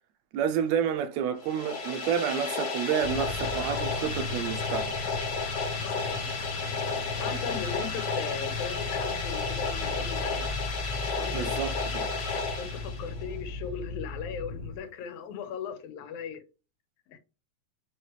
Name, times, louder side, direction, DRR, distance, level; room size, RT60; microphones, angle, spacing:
voice 1, 0.3-4.9 11.3-12.1, right 8 dB, 80° right, 1.8 m, -29 dB
sound 1, 1.4-13.3, left 4 dB, 50° left, 1.4 m, -33 dB
sound 2, 3.0-14.8, left 3 dB, 65° left, 1.2 m, -36 dB
voice 2, 5.8-6.3 7.2-10.4 11.2-11.7 12.6-16.4 17.1-17.2, left 7 dB, 90° left, 2.2 m, -38 dB
5.6 x 3.1 x 3.0 m
omnidirectional pair, 3.3 m